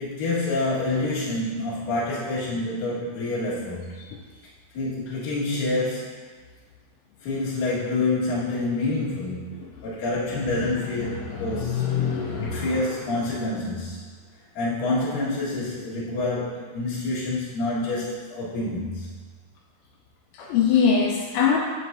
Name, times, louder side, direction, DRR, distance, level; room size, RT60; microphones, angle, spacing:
voice 1, 0.0-3.9 4.7-6.2 7.2-9.5 9.8-11.9 12.4-14.1 14.5-19.1, left 2 dB, 60° left, -8 dB, 2.9 m, -27 dB
voice 2, 11.4-12.8 20.4-21.6, left 6 dB, 85° left, -2 dB, 3.0 m, -22 dB
7.8 x 7.7 x 2.6 m, 1.4 s
omnidirectional pair, 5.4 m